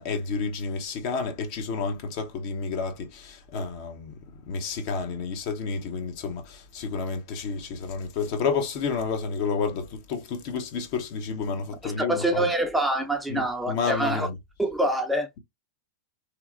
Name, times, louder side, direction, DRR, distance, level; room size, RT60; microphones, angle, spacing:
voice 1, 0.0-4.1 4.5-12.5 13.3-14.3, left 5 dB, 50° left, 0.8 m, -30 dB
voice 2, 11.8-14.3 14.6-15.3, right 1 dB, 5° right, 0.5 m, -25 dB
2.9 x 2.0 x 2.5 m
hypercardioid pair, 100°, 0 cm